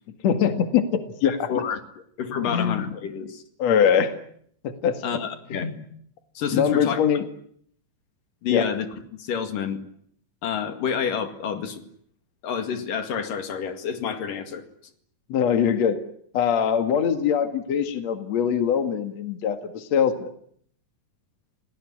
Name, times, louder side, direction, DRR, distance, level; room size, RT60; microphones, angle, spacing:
voice 1, 0.2-1.5 2.4-2.9 3.6-4.2 4.6-5.0 5.5-5.7 6.5-7.2 8.5-8.6 15.3-16.0 16.3-20.3, left 8 dB, 55° left, 8 dB, 2.9 m, -22 dB
voice 2, 1.3-1.8 2.2-3.4 5.0-5.7 6.4-7.0 8.4-8.9 9.2-9.8 10.4-11.9 12.4-14.6, left 7 dB, 80° left, 8 dB, 3.8 m, -28 dB
28.5 x 19.0 x 10.0 m, 0.67 s
omnidirectional pair, 3.9 m